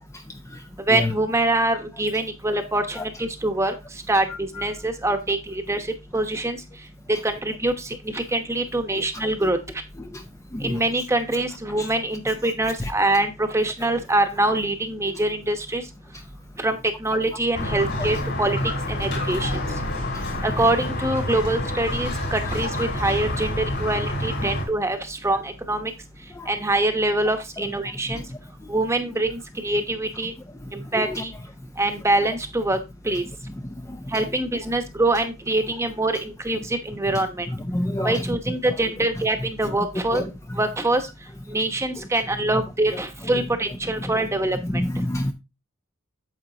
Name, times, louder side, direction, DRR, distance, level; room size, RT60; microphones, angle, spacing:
voice 1, 0.9-3.7 4.1-6.6 7.2-9.6 10.6-15.8 16.6-18.6 18.9-19.5 20.4-25.9 26.5-28.2 28.7-30.3 30.7-31.3 31.8-32.8 33.0-33.2 34.1-37.5 38.0-40.3 40.6-41.0 41.5-44.6, right 2 dB, 15° right, 1.0 m, -24 dB
Squeak, 17.5-24.6, left 1 dB, 55° left, 3.9 m, -28 dB
voice 2, 33.9-34.2 37.7-38.2 40.1-40.2 44.6-45.3, left 1 dB, 15° left, 0.6 m, -27 dB
9.1 x 7.3 x 2.8 m
head